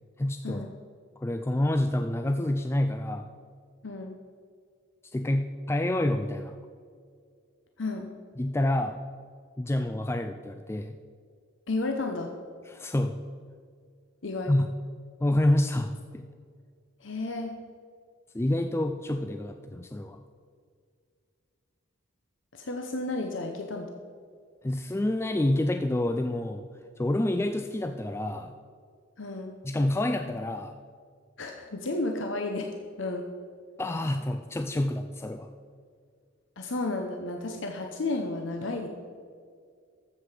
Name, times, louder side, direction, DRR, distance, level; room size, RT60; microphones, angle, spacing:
voice 1, 0.2-0.6 1.2-3.3 5.0-6.5 8.4-9.0 9.6-11.0 12.7-13.2 14.5-14.7 15.2-16.2 18.3-20.2 24.6-26.7 27.0-28.5 29.6-30.8 33.8-35.5, left 1 dB, 10° left, 6 dB, 0.3 m, -28 dB
voice 2, 3.8-4.2 7.8-8.1 11.7-12.3 14.2-14.5 17.0-17.5 22.5-23.9 29.2-29.5 31.4-33.3 36.6-38.9, left 2 dB, 65° left, 3 dB, 0.9 m, -32 dB
13.0 x 7.8 x 5.0 m, 2.2 s
head